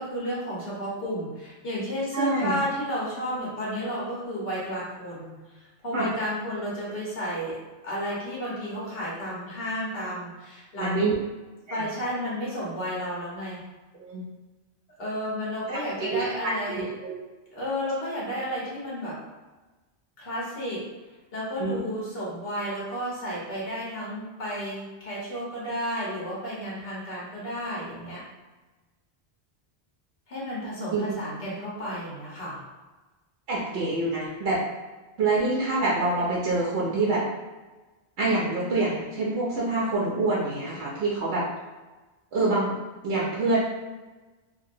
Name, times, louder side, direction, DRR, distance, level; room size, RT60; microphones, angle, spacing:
voice 1, 0.0-11.2 11.7-13.6 15.0-16.9 17.5-19.2 20.2-20.9 21.3-28.2 30.3-32.6, equal, 60° left, -6 dB, 1.3 m, -32 dB
voice 2, 2.1-2.6 5.9-6.1 10.8-11.1 11.7-11.9 14.0-14.3 16.0-17.1 21.6-21.8 30.9-31.1 33.5-34.6 35.2-37.2 38.2-41.5 42.3-42.7 43.0-43.6, right 2 dB, 85° right, -6 dB, 0.9 m, -26 dB
2.9 x 2.7 x 2.6 m, 1.2 s
omnidirectional pair, 1.1 m